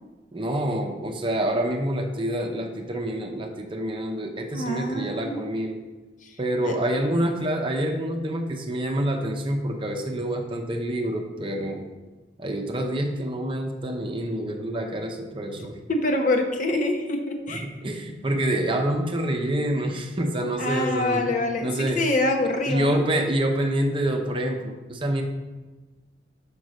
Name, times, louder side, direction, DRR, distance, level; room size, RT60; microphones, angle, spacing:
voice 1, 0.3-5.8 6.4-11.9 12.4-15.8 17.5-21.2 21.6-22.0 22.7-25.2, right 1 dB, 30° right, 3 dB, 0.7 m, -27 dB
voice 2, 4.5-5.4 6.2-6.3 6.6-6.7 15.5-17.7 20.6-21.7 21.9-23.0, left 1 dB, 45° left, 3 dB, 0.9 m, -25 dB
5.4 x 5.3 x 6.3 m, 1.2 s
head